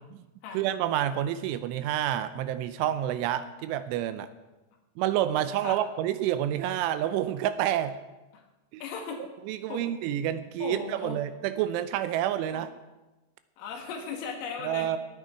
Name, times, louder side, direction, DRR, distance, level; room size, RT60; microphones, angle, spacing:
voice 1, 0.5-4.3 5.0-8.0 8.7-8.8 9.5-12.7 14.6-15.0, right 11 dB, 85° right, 12 dB, 3.0 m, -28 dB
voice 2, 8.8-9.2 9.7-9.8 10.6-11.2 12.5-12.6 13.6-14.9, left 6 dB, 90° left, 1 dB, 4.6 m, -37 dB
18.5 x 9.3 x 4.6 m, 1.1 s
omnidirectional pair, 5.7 m